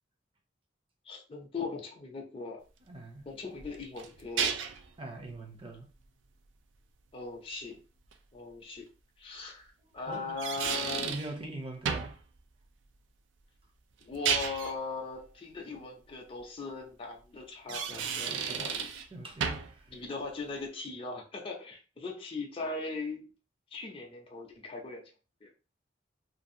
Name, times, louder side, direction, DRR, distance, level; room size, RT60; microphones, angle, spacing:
voice 1, 1.0-2.6 3.3-4.6 7.1-7.8 8.3-8.9 9.2-11.1 14.0-18.9 19.9-23.3 23.7-25.0 25.4-25.5, left 3 dB, 30° left, 0.5 m, -39 dB
voice 2, 2.8-3.3 5.0-5.9 9.9-10.3 10.9-12.2 17.7-18.7 19.1-20.0, right 2 dB, 30° right, 0.6 m, -43 dB
sound 1, 3.6-4.9 8.1-8.2 10.1-11.3 11.9-12.2 14.0-14.8 17.5-19.1 19.4-19.8, right 6 dB, 85° right, 0.4 m, -32 dB
2.6 x 2.3 x 2.6 m
head